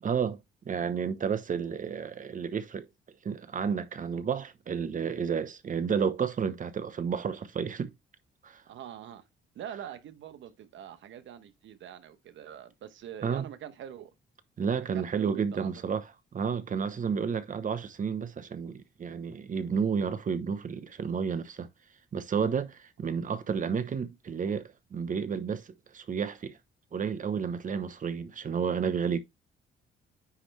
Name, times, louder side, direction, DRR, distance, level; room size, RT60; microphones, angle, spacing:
voice 1, 0.0-0.4 0.6-2.9 3.2-7.9 8.4-8.6 13.2-13.5 14.6-21.7 22.1-26.6 26.9-29.2, right 6 dB, 40° right, 1.0 m, -31 dB
voice 2, 8.7-9.2 9.5-14.1 14.9-15.7, right 10 dB, 70° right, 1.0 m, -44 dB
9.7 x 3.4 x 3.2 m
cardioid pair, 90°, 20 cm